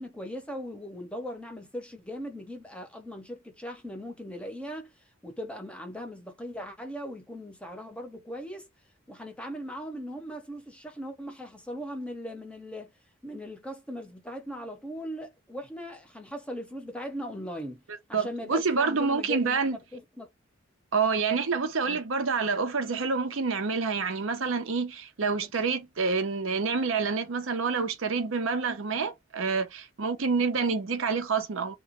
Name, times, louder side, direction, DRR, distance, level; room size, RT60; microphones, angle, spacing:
voice 1, 0.0-4.9 5.2-8.7 9.1-12.9 13.2-17.8 18.1-20.3 21.8-22.0, equal, 5° left, 0.7 m, -39 dB
voice 2, 18.1-19.8 20.9-31.7, right 4 dB, 75° right, 0.7 m, -27 dB
3.0 x 2.2 x 2.9 m
head